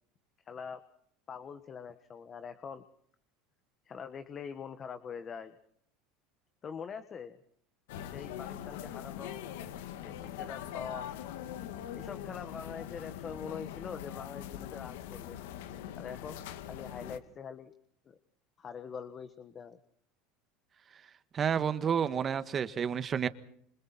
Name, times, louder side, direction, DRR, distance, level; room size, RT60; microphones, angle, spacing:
voice 1, 0.4-0.8 1.3-2.8 3.8-5.6 6.6-7.4 8.0-9.5 10.0-11.1 11.9-15.4 15.9-17.7 18.0-18.2 18.6-19.8, left 6 dB, 30° left, 1.5 m, -44 dB
sound 1, 7.9-17.2, left 10 dB, 80° left, 1.8 m, -42 dB
voice 2, 21.3-23.3, right 7 dB, 30° right, 1.6 m, -30 dB
28.0 x 27.0 x 4.4 m
supercardioid pair, 120°, 0 cm